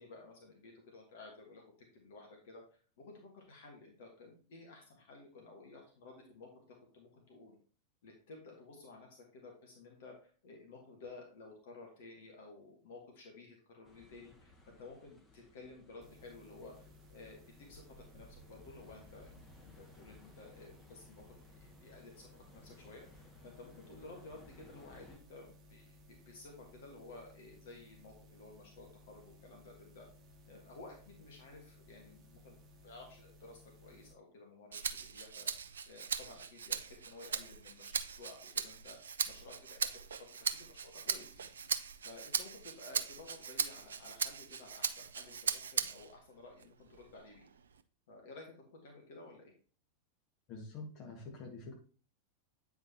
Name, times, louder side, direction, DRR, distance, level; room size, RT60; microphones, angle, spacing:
voice 1, 0.0-1.6 1.9-2.6 3.0-6.5 6.9-7.6 8.0-16.7 17.1-17.4 17.7-17.8 18.1-26.0 26.2-30.1 30.5-35.5 35.8-40.2 40.5-41.5 42.0-47.5 48.1-49.5, left 3 dB, 55° left, 1 dB, 1.6 m, -54 dB
sound 1, 13.8-25.2, left 2 dB, 15° left, 1.5 m, -60 dB
sound 2, 16.0-34.1, left 2 dB, 30° right, 1.2 m, -60 dB
Rattle (instrument), 34.7-46.2 46.6-47.8, right 6 dB, 70° right, 0.4 m, -39 dB
voice 2, 50.5-51.7, left 3 dB, 40° left, 2 dB, 1.7 m, -46 dB
8.6 x 4.8 x 2.9 m, 0.40 s
figure-of-eight pair, 90°, 0 cm